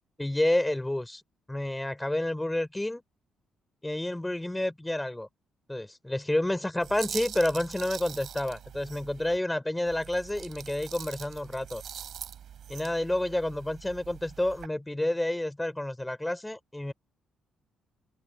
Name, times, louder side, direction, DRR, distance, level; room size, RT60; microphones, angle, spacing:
voice 1, 0.2-1.2 1.5-3.0 3.8-5.3 5.7-11.8 12.7-16.9, left 1 dB, 10° left, 4.7 m, -29 dB
sound 1, 6.8-9.4 9.9-14.7, right 9 dB, 65° right, 5.0 m, -43 dB
cardioid pair, 90°, 0 cm